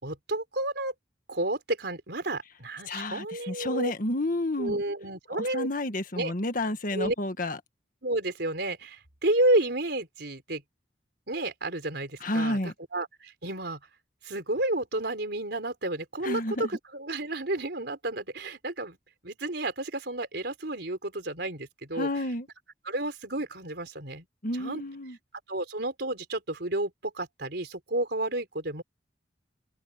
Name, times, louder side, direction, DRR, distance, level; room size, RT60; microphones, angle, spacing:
voice 1, 0.0-0.9 1.3-3.9 4.6-5.7 6.2-6.3 6.9-7.1 8.0-10.6 11.3-13.8 14.2-19.0 19.2-22.1 22.8-24.3 24.6-24.8 25.5-28.8, right 1 dB, 65° right, 4.5 m, -31 dB
voice 2, 2.9-4.8 5.4-7.6 12.2-12.7 16.2-16.7 22.0-22.5 24.4-25.2, left 1 dB, 50° left, 1.7 m, -30 dB
open air
head